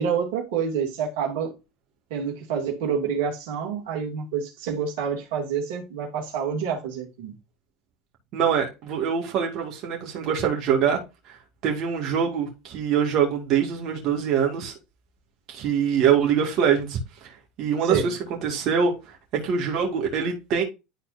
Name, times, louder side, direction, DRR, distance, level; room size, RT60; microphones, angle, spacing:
voice 1, 0.0-1.5 2.1-7.3 17.8-18.1, right 7 dB, 75° right, 2.6 m, -28 dB
voice 2, 8.3-11.0 11.3-11.4 11.6-14.7 15.5-18.9 19.3-20.6, right 7 dB, 55° right, 2.5 m, -24 dB
11.5 x 4.4 x 2.8 m
hypercardioid pair, 85°, 0 cm